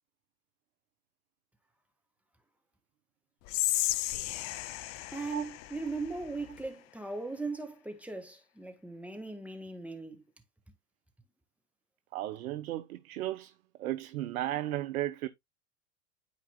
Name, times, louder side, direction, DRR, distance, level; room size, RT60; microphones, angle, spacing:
Whispering, 3.5-6.7, left 16 dB, 35° left, 0.5 m, -34 dB
voice 1, 5.1-10.2, right 3 dB, 5° right, 1.5 m, -38 dB
voice 2, 12.1-13.5 13.8-15.3, right 14 dB, 65° right, 0.9 m, -34 dB
12.5 x 4.7 x 2.2 m
hypercardioid pair, 100°, 46 cm